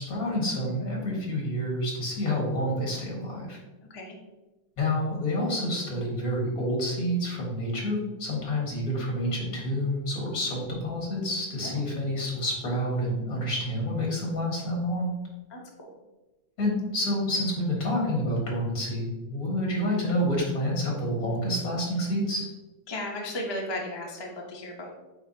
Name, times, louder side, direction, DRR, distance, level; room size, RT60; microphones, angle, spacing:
voice 1, 0.0-3.6 4.8-15.1 16.6-22.5, equal, 50° left, -2 dB, 2.1 m, -28 dB
voice 2, 15.5-15.9 22.9-24.9, left 1 dB, 25° left, -1 dB, 0.5 m, -35 dB
8.2 x 4.2 x 2.8 m, 1.1 s
omnidirectional pair, 2.0 m